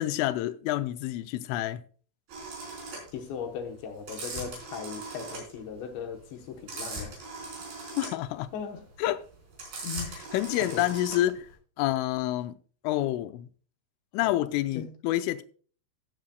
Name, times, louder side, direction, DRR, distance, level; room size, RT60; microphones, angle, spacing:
voice 1, 0.0-1.8 8.0-8.5 9.0-9.2 10.3-11.5 11.8-12.6 12.8-13.5 14.1-15.4, left 14 dB, 90° left, 3.1 m, -28 dB
sound 1, 2.3-11.5, right 3 dB, 50° right, 6.0 m, -40 dB
voice 2, 3.1-7.2 8.5-8.8 9.8-10.2 10.6-10.8 14.2-14.3 14.7-15.0, left 7 dB, 75° left, 3.2 m, -38 dB
17.0 x 9.2 x 2.3 m
omnidirectional pair, 5.6 m